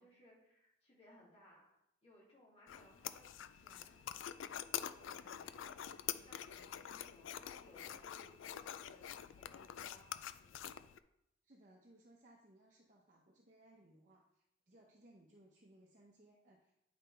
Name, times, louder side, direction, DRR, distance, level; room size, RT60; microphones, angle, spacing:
voice 1, 0.0-1.7 2.0-4.0 4.5-10.8, left 1 dB, 30° left, -5 dB, 2.4 m, -65 dB
sound 1, 2.7-11.0, left 10 dB, 90° left, 0.4 m, -46 dB
voice 2, 11.4-16.7, right 1 dB, 40° right, -2 dB, 0.8 m, -65 dB
9.6 x 5.2 x 3.4 m, 0.81 s
head